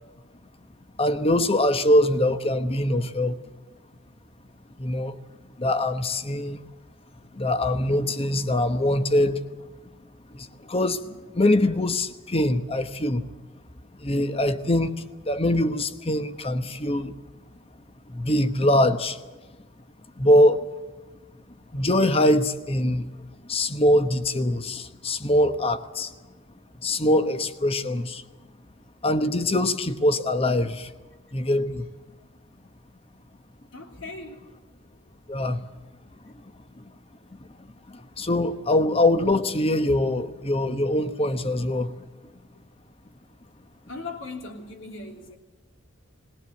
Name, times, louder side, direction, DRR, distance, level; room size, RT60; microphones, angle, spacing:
voice 1, 1.0-3.4 4.8-5.2 5.6-6.6 7.3-9.4 10.3-13.3 14.0-17.1 18.1-19.2 20.2-20.7 21.7-23.1 23.4-26.1 26.8-28.2 29.0-30.9 31.3-31.9 35.3-35.7 36.2-36.3 36.8-36.9 37.6-42.0, left 1 dB, 30° left, 1.0 m, -23 dB
voice 2, 33.7-34.4 43.9-45.4, left 3 dB, 70° left, 3.2 m, -39 dB
20.0 x 18.5 x 8.3 m
head